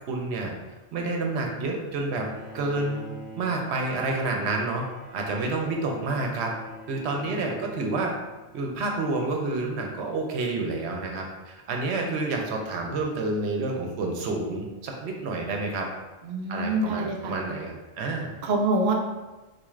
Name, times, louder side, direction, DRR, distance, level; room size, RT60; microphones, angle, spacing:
voice 1, 0.1-0.5 0.9-2.3 2.5-3.1 3.4-4.9 5.1-6.5 6.9-8.1 8.5-15.9 16.5-18.3, right 3 dB, 80° right, 1 dB, 0.9 m, -29 dB
Bowed string instrument, 2.1-8.9, equal, ahead, 1.0 m, -45 dB
voice 2, 16.2-17.3 18.4-18.9, right 2 dB, 55° right, 1 dB, 0.6 m, -25 dB
4.1 x 3.1 x 2.4 m, 1.2 s
omnidirectional pair, 1.1 m